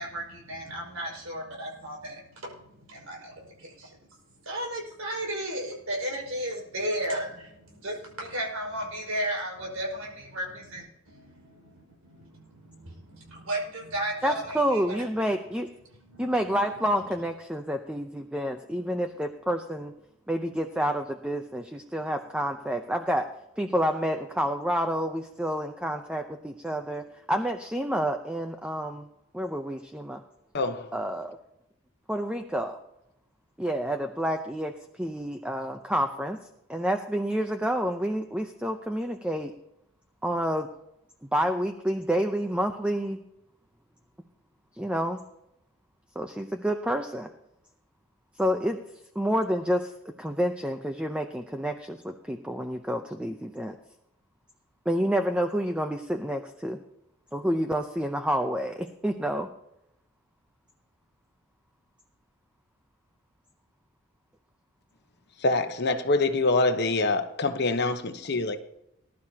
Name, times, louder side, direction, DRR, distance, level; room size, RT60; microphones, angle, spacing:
voice 1, 0.0-3.9 4.4-15.0 16.1-16.2, right 1 dB, 85° right, 5.3 m, -34 dB
voice 2, 14.2-15.7 16.2-19.9 20.3-23.2 23.6-29.1 29.3-30.2 30.9-31.4 32.1-32.8 33.6-36.4 36.7-39.5 40.2-40.7 41.2-43.2 44.8-45.2 46.1-47.3 48.4-48.8 49.1-49.9 50.2-53.8 54.9-56.8 57.3-59.5, equal, 5° right, 0.7 m, -29 dB
voice 3, 30.5-30.9 65.4-68.6, left 2 dB, 50° left, 1.0 m, -25 dB
20.0 x 11.5 x 2.9 m
head